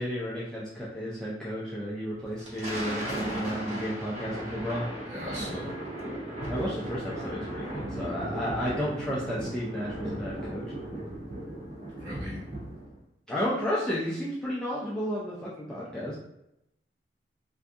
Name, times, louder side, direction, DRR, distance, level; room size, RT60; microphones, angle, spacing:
voice 1, 0.0-4.8 6.5-10.6 13.3-16.1, equal, 5° left, -8 dB, 0.5 m, -32 dB
Thunder, 2.2-13.0, right 1 dB, 35° right, 0.7 m, -36 dB
voice 2, 5.1-5.7 12.0-12.4, equal, 70° right, -11 dB, 1.3 m, -38 dB
2.6 x 2.5 x 3.4 m, 0.82 s
head